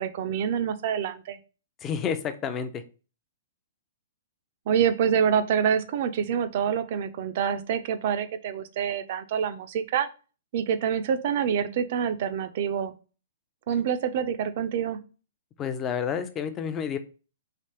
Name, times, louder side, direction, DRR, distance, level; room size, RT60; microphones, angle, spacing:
voice 1, 0.0-1.4 4.7-10.1 10.5-12.9 13.7-15.0, right 8 dB, 50° right, 10 dB, 0.4 m, -26 dB
voice 2, 1.8-2.8 15.6-17.0, left 7 dB, 25° left, 10 dB, 0.4 m, -30 dB
3.3 x 3.0 x 2.8 m, 0.35 s
hypercardioid pair, 130°, 0 cm